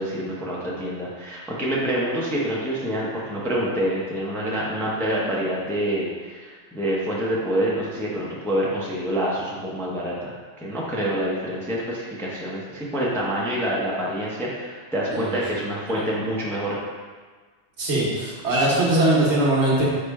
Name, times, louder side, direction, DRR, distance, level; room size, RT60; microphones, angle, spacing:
voice 1, 0.0-16.8, equal, 5° left, -5 dB, 0.5 m, -27 dB
voice 2, 15.1-15.6 15.9-16.1 17.8-19.8, right 1 dB, 80° right, -5 dB, 1.3 m, -21 dB
4.8 x 2.1 x 4.6 m, 1.5 s
omnidirectional pair, 1.1 m